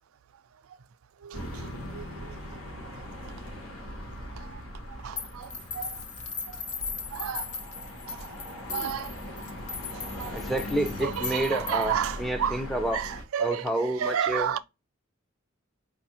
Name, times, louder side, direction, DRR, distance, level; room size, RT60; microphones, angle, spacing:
voice 1, 1.2-1.6 1.9-2.4 4.3-4.6 4.9-6.0 6.5-6.6 7.1-7.6 8.1-8.3 8.7-9.1 9.9-10.4 11.0-12.6 12.9-13.7 14.0-14.6, right 8 dB, 90° right, 0.4 m, -32 dB
sound 1, 1.3-13.2, left 1 dB, 85° left, 1.0 m, -40 dB
sound 2, 5.2-12.0, left 5 dB, 35° left, 0.8 m, -38 dB
voice 2, 10.3-13.0 13.4-14.6, right 1 dB, ahead, 0.5 m, -29 dB
4.8 x 2.5 x 2.8 m
head